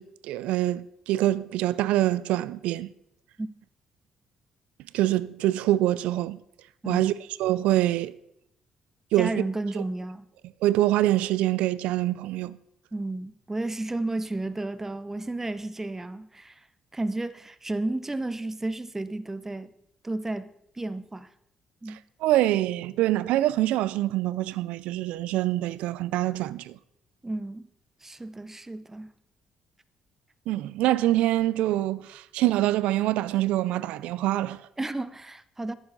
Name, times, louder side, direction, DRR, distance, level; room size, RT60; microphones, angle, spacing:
voice 1, 0.0-2.9 4.9-6.4 6.9-7.1 7.4-8.1 9.1-9.4 9.8-9.9 10.6-12.6 22.2-26.8 30.5-34.6, right 14 dB, 80° right, 0.4 m, -25 dB
voice 2, 9.2-10.3 12.9-16.7 16.9-19.7 20.0-21.3 21.8-22.0 27.2-27.7 28.0-29.1 34.8-35.7, right 2 dB, 20° right, 0.7 m, -32 dB
11.0 x 8.9 x 4.0 m
supercardioid pair, 55°, 2 cm